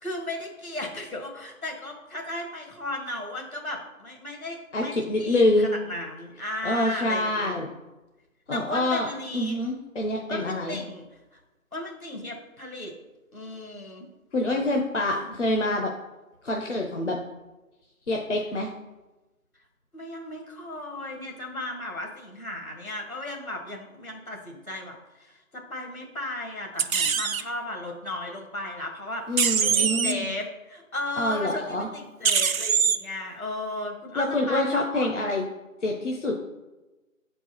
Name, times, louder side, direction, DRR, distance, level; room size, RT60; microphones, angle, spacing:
voice 1, 0.0-7.6 8.5-9.6 10.3-11.4 11.7-13.0 13.3-14.1 15.1-15.4 19.9-29.2 29.6-35.1, left 1 dB, 80° left, 2 dB, 2.0 m, -35 dB
voice 2, 4.7-5.7 6.6-7.7 8.5-9.1 9.3-10.8 14.3-15.9 16.4-17.2 18.1-18.7 29.3-30.3 31.2-31.9 34.2-35.4 35.8-36.4, left 1 dB, 55° left, 1 dB, 0.8 m, -26 dB
sound 1, 26.8-27.4 29.4-30.1 32.2-33.0, right 6 dB, 75° right, 0.6 m, -23 dB
6.6 x 4.5 x 4.4 m, 1.1 s
figure-of-eight pair, 165°, 42 cm